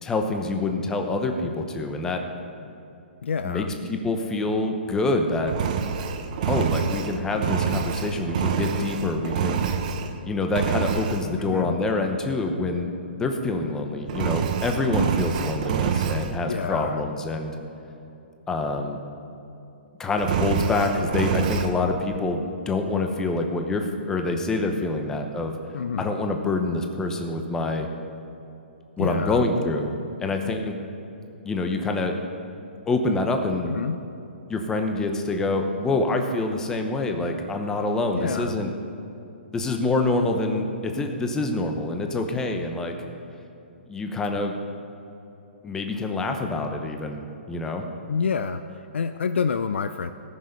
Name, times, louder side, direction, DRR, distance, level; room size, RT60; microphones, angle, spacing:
voice 1, 0.0-2.2 3.4-5.6 6.5-9.6 10.3-12.9 13.2-17.5 18.5-19.0 20.0-25.5 26.0-27.9 29.0-30.7 31.4-32.2 32.9-33.8 34.5-38.7 39.5-42.9 43.9-44.6 45.6-47.9, left 2 dB, 10° left, 4 dB, 0.9 m, -26 dB
voice 2, 3.2-3.7 11.4-11.7 16.5-17.0 25.7-26.1 29.0-29.4 33.7-34.0 38.1-38.6 48.1-50.1, left 6 dB, 85° left, 9 dB, 0.5 m, -28 dB
Engine, 5.5-10.2 10.5-11.3 14.1-16.4 20.2-21.7, right 7 dB, 40° right, 0.8 m, -26 dB
18.5 x 6.4 x 5.3 m, 2.8 s
hypercardioid pair, 155°, 6 cm